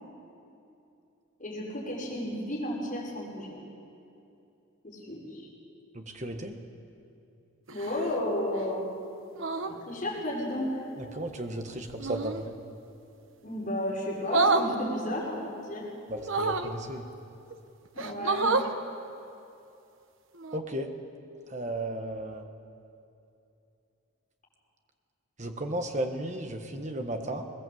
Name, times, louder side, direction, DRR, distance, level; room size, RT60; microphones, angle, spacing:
voice 1, 1.4-3.5 4.8-5.5 7.7-8.8 9.6-10.8 13.4-15.9 17.9-18.5, left 1 dB, 40° left, -5 dB, 6.0 m, -33 dB
voice 2, 5.9-6.6 11.0-12.6 16.1-17.1 20.5-20.9 21.5-22.5 25.4-27.4, right 1 dB, 35° right, 5 dB, 1.5 m, -34 dB
sound 1, 7.7-8.2 9.3-9.8 12.0-12.4 14.2-14.7 16.2-16.7 17.5-17.6 18.0-18.7 20.4-20.6, right 3 dB, 70° right, 1.1 m, -28 dB
21.5 x 19.0 x 7.9 m, 2.7 s
head